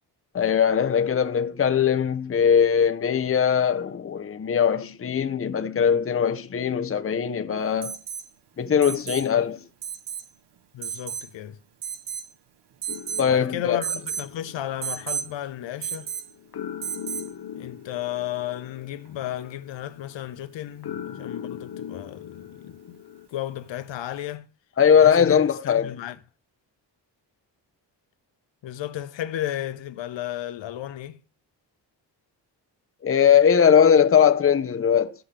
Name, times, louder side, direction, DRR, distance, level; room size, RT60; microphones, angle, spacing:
voice 1, 0.3-8.0 8.6-9.6 13.2-13.8 24.8-25.9 33.0-35.1, left 7 dB, 30° left, 0.7 m, -20 dB
Alarm, 7.8-8.3 8.8-9.3 9.8-10.3 10.8-11.3 11.8-12.3 12.8-13.3 13.8-14.3 14.8-15.3 15.8-16.3 16.8-17.3 19.0-19.1, right 8 dB, 65° right, 1.1 m, -33 dB
voice 2, 10.7-11.6 13.3-16.1 17.5-23.0 23.3-24.5 25.0-26.2 28.6-31.2, left 12 dB, 80° left, 0.9 m, -34 dB
sound 1, 12.9-23.3, left 9 dB, 55° left, 0.9 m, -41 dB
15.0 x 5.6 x 3.4 m
cardioid pair, 85°, 44 cm